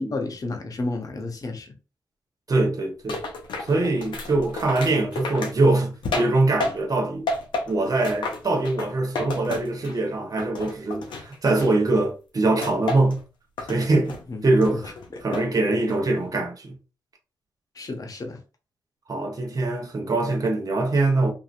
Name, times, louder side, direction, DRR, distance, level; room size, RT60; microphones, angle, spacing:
voice 1, 0.0-1.7 14.3-14.4 14.7-14.8 15.1-15.2 17.7-18.4, left 2 dB, 45° left, 0.8 m, -31 dB
voice 2, 2.5-3.2 3.7-7.3 7.7-13.2 13.6-14.2 14.4-14.9 15.2-16.8 19.1-21.3, right 2 dB, 50° right, 0.9 m, -23 dB
sound 1, 3.1-7.0 7.3-10.1 10.4-12.0 12.6-13.2 13.6-14.2 14.6-15.5 15.9-16.3, left 3 dB, 75° left, 0.7 m, -32 dB
2.8 x 2.6 x 2.5 m
supercardioid pair, 40°, 8 cm